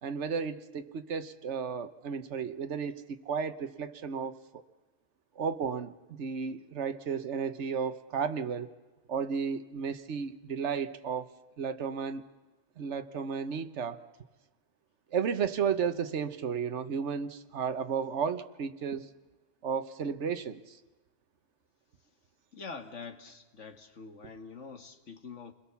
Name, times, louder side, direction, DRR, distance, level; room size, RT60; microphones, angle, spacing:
voice 1, 0.0-4.4 5.4-5.9 6.2-8.7 9.1-11.3 11.6-12.2 12.8-14.0 15.1-19.1 19.6-20.8, right 6 dB, 65° right, 9 dB, 1.4 m, -33 dB
voice 2, 22.5-25.5, left 4 dB, 70° left, 7 dB, 2.0 m, -45 dB
29.0 x 21.5 x 7.1 m, 1.2 s
omnidirectional pair, 1.3 m